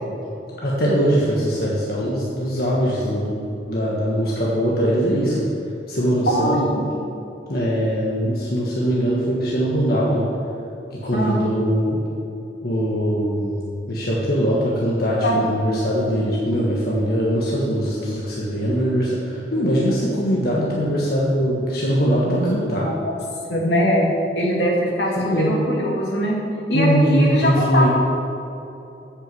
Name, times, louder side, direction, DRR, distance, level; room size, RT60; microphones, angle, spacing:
voice 1, 0.6-5.4 5.9-6.6 7.5-10.2 10.9-12.0 12.6-13.6 13.9-22.9 25.2-25.6 26.7-27.9, equal, 60° left, -5 dB, 1.3 m, -21 dB
voice 2, 6.3-6.9 11.1-11.4 15.2-15.4 22.2-22.5 22.8-23.1 23.5-24.1 24.4-25.1 25.4-26.4 26.7-27.9, equal, 80° left, -2 dB, 2.1 m, -21 dB
8.2 x 6.3 x 7.6 m, 2.8 s
head